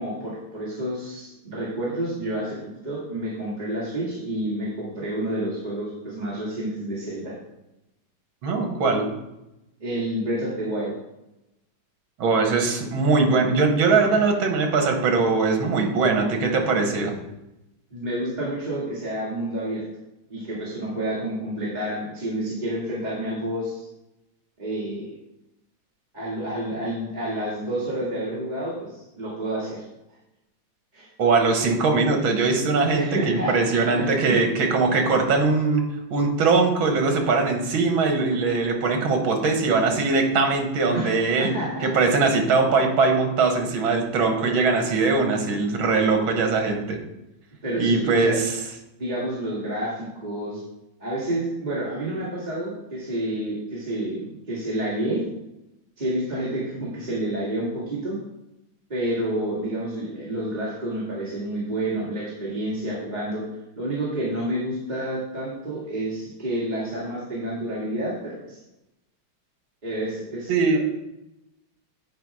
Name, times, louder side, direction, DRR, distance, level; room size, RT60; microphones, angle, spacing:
voice 1, 0.0-2.6 2.8-7.3 9.8-10.9 13.9-14.2 17.9-19.8 20.3-23.9 24.6-25.1 26.1-29.8 30.9-31.1 32.9-34.4 39.0-39.1 40.9-41.9 47.6-48.4 49.0-50.6 51.0-55.2 56.0-58.2 58.9-63.4 63.8-68.6 69.8-70.8, right 1 dB, 20° right, -8 dB, 1.9 m, -29 dB
voice 2, 8.4-9.1 12.2-17.1 31.2-35.8 36.1-41.5 41.8-47.0 47.8-48.5 70.5-70.8, right 4 dB, 75° right, 4 dB, 2.1 m, -21 dB
9.2 x 4.7 x 4.8 m, 0.91 s
omnidirectional pair, 2.3 m